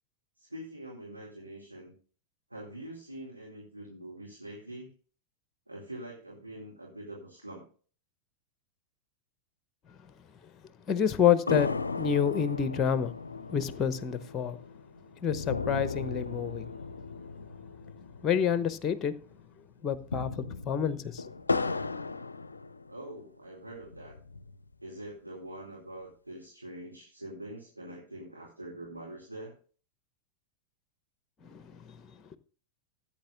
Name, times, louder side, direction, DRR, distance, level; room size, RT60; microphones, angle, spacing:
voice 1, 0.4-1.9 2.5-4.9 5.7-7.6 22.9-24.1 24.8-29.6, right 1 dB, 85° right, 2.4 m, -44 dB
voice 2, 10.9-13.1 13.5-14.6 15.2-16.6 18.2-19.1 19.8-21.2 31.4-32.0, left 8 dB, 25° left, 0.8 m, -28 dB
sound 1, 11.5-19.1 19.3-19.4 19.9-23.2 23.7-24.7, left 4 dB, 80° left, 0.4 m, -36 dB
15.5 x 8.6 x 2.5 m
figure-of-eight pair, 90°, 0 cm